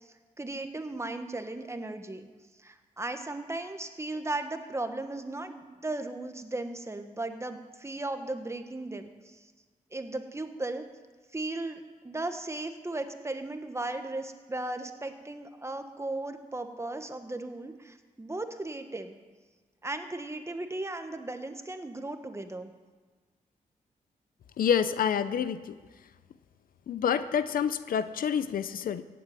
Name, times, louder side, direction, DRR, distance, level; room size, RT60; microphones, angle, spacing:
voice 1, 0.0-2.3 2.6-9.5 9.9-10.8 11.3-19.1 19.8-22.7, right 2 dB, 20° right, 7 dB, 1.4 m, -36 dB
voice 2, 24.6-25.8 26.9-29.0, left 8 dB, 80° left, 13 dB, 0.7 m, -28 dB
15.5 x 8.0 x 8.9 m, 1.4 s
cardioid pair, 75°, 15 cm